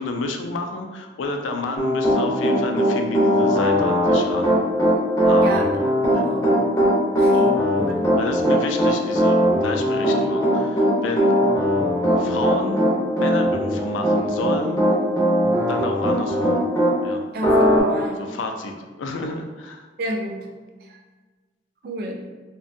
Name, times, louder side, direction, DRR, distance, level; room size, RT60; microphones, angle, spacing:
voice 1, 0.0-4.5 5.2-5.5 6.1-6.3 8.2-11.6 12.2-14.8 15.7-16.6 17.0-17.2 18.2-19.9, left 2 dB, 90° left, 4 dB, 0.3 m, -30 dB
Piano, 1.8-16.9 17.4-17.8, equal, 15° left, 0.5 m, -19 dB
voice 2, 5.4-5.7 6.1-6.5 7.2-8.1 17.3-18.3 20.0-20.5 20.8-21.0 21.8-22.3, right 1 dB, 55° right, 1 dB, 0.3 m, -30 dB
2.5 x 2.1 x 2.5 m, 1.3 s
head